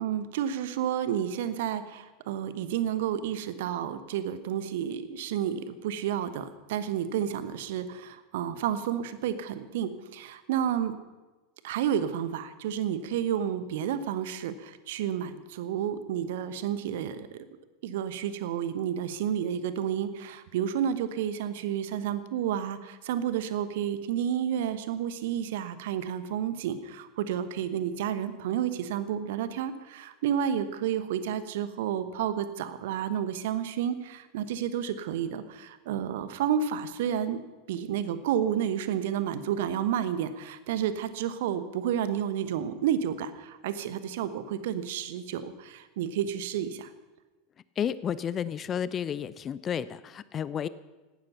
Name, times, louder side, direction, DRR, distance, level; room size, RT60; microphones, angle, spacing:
voice 1, 0.0-10.9 11.6-17.4 17.8-37.4 37.7-46.9, right 9 dB, 55° right, 13 dB, 1.1 m, -31 dB
voice 2, 47.8-50.7, left 8 dB, 30° left, 18 dB, 0.5 m, -31 dB
17.0 x 12.5 x 5.7 m, 1.2 s
figure-of-eight pair, 85°, 0 cm